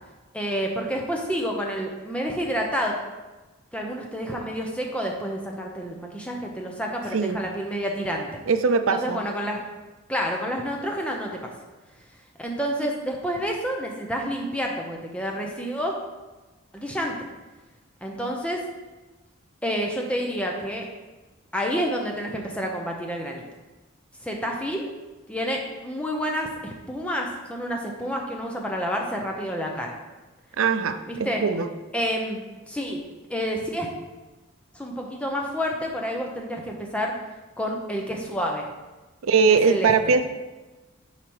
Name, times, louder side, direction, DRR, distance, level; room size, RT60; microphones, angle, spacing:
voice 1, 0.3-2.9 3.7-8.4 8.9-9.6 10.1-11.5 12.4-15.9 16.7-17.1 18.0-18.6 19.6-20.9 21.5-23.4 24.2-24.9 25.3-30.0 31.1-31.4 31.9-33.0 33.3-33.9 34.7-37.1 37.6-38.7 39.5-40.2, equal, 5° left, 0 dB, 0.8 m, -29 dB
voice 2, 8.5-9.2 30.6-31.7 39.2-40.3, right 5 dB, 85° right, 9 dB, 0.5 m, -21 dB
7.1 x 5.0 x 4.7 m, 1.2 s
head